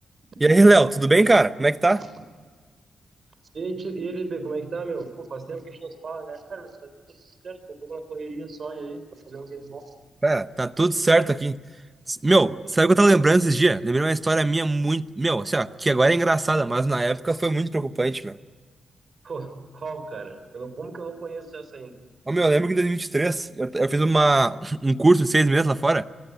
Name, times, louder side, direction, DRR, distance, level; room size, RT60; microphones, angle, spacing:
voice 1, 0.4-2.0 10.2-11.6 12.1-18.3 22.3-26.1, right 2 dB, 15° right, 12 dB, 0.8 m, -20 dB
voice 2, 3.5-9.9 19.2-21.9, right 4 dB, 40° right, 10 dB, 3.7 m, -35 dB
29.0 x 24.0 x 8.1 m, 1.5 s
wide cardioid pair, 175°, 0 cm